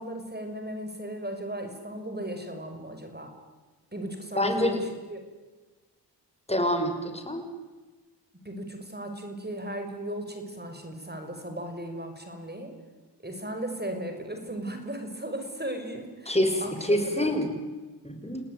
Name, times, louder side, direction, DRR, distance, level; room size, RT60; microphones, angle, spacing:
voice 1, 0.0-3.3 3.9-4.8 5.1-5.2 8.4-12.8 13.2-16.3 16.6-17.3, right 1 dB, 25° right, 6 dB, 5.6 m, -36 dB
voice 2, 4.3-4.8 6.5-7.5 16.3-17.5 18.0-18.4, left 1 dB, 15° left, 6 dB, 5.7 m, -26 dB
29.0 x 18.5 x 9.6 m, 1.3 s
cardioid pair, 40°, 42 cm